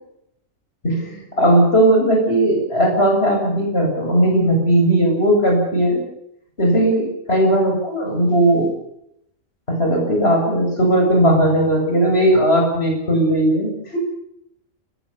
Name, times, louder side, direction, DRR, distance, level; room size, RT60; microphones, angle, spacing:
voice 1, 0.8-6.0 6.6-8.7 9.7-14.0, right 1 dB, 50° left, 2 dB, 7.7 m, -17 dB
28.5 x 16.0 x 7.1 m, 0.77 s
omnidirectional pair, 1.4 m